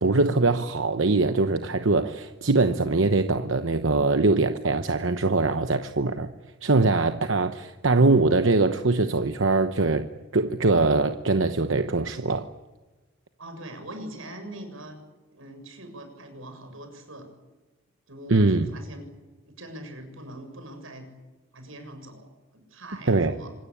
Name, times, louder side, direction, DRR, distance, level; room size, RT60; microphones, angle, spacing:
voice 1, 0.0-6.3 6.6-10.1 10.3-12.5 18.3-18.7 23.1-23.4, right 3 dB, 70° right, 1.0 m, -22 dB
voice 2, 13.4-15.0 15.3-17.3 18.1-19.1 19.6-21.1 21.5-23.5, right 1 dB, 85° right, 7.2 m, -42 dB
26.5 x 21.0 x 8.7 m
head